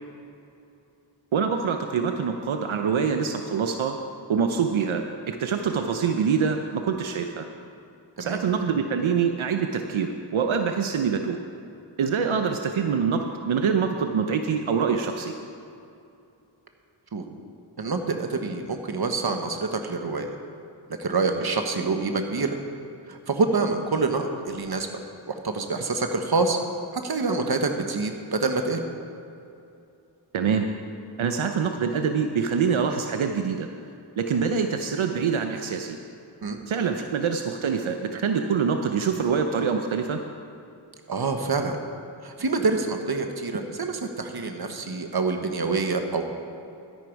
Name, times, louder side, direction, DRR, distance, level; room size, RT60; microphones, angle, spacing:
voice 1, 1.3-4.0 4.3-7.5 8.2-11.4 12.0-15.3 30.3-30.7 31.2-33.7 34.2-36.0 36.7-40.2, right 6 dB, 85° right, 5 dB, 0.8 m, -25 dB
voice 2, 17.8-20.3 21.0-22.6 23.1-24.9 25.3-26.6 26.9-28.8 36.4-36.6 41.1-41.8 42.2-46.2, right 3 dB, 50° right, 5 dB, 1.3 m, -26 dB
12.5 x 10.5 x 4.7 m, 2.7 s
wide cardioid pair, 70°, 47 cm